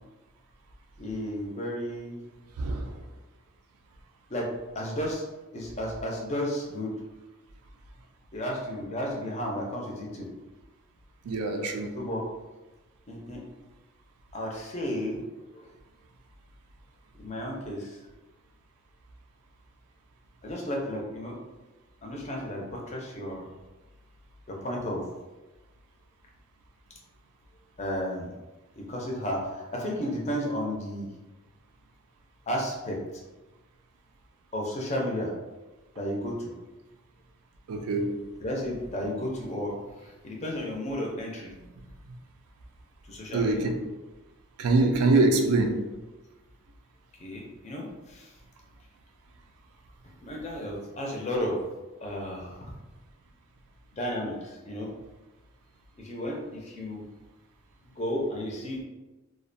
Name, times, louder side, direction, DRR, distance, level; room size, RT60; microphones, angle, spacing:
voice 1, 1.0-2.2 4.3-4.5 4.7-5.2 5.5-6.9 8.3-10.3 12.0-12.2 13.1-13.4 14.3-15.2 15.5-15.7 17.2-18.0 20.4-21.4 22.0-23.4 24.5-25.0 27.8-28.3 28.8-31.1 32.5-33.0 34.5-35.3 36.0-36.5 38.4-39.8 40.0-41.5 43.1-43.6 47.2-48.3 50.2-51.6 52.0-52.6 53.9-54.9 56.0-57.0 57.8-58.8, equal, 30° left, 0.4 m, -33 dB
voice 2, 2.6-3.0 11.2-11.9 37.7-38.3 41.5-41.6 43.3-43.8 44.6-45.9, right 2 dB, 90° right, 0.4 m, -24 dB
2.3 x 2.1 x 2.5 m
head